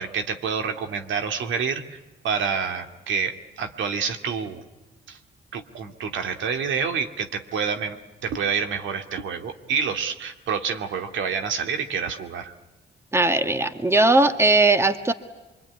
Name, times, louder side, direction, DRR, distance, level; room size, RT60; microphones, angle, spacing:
voice 1, 0.0-2.0 2.2-4.6 5.1-5.2 5.5-8.0 8.2-12.5, right 6 dB, 75° right, 6 dB, 2.3 m, -28 dB
voice 2, 13.1-15.1, right 2 dB, 15° right, 9 dB, 1.7 m, -19 dB
24.5 x 24.5 x 9.7 m, 1.1 s
cardioid pair, 90°, 20 cm